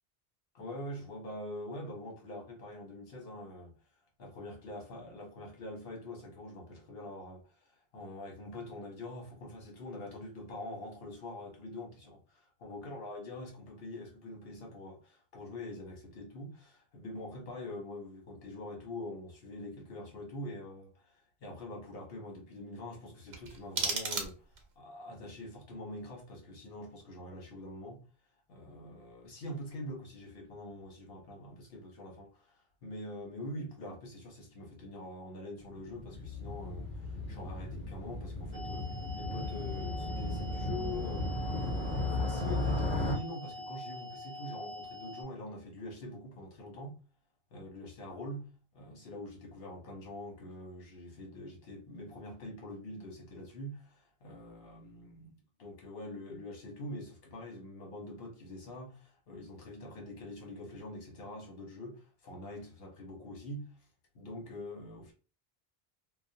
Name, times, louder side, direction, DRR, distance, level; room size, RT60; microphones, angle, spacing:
voice 1, 0.5-3.7 4.2-12.2 12.6-28.0 28.5-47.0 47.5-63.9 64.1-65.1, left 1 dB, 70° left, 1.1 m, -44 dB
sound 1, 23.3-24.8, right 4 dB, 90° right, 0.9 m, -35 dB
Motorcycle, 35.6-43.1, left 2 dB, 50° left, 0.8 m, -35 dB
sound 2, 38.5-45.2, left 2 dB, 60° right, 0.7 m, -44 dB
2.4 x 2.1 x 2.6 m
omnidirectional pair, 1.0 m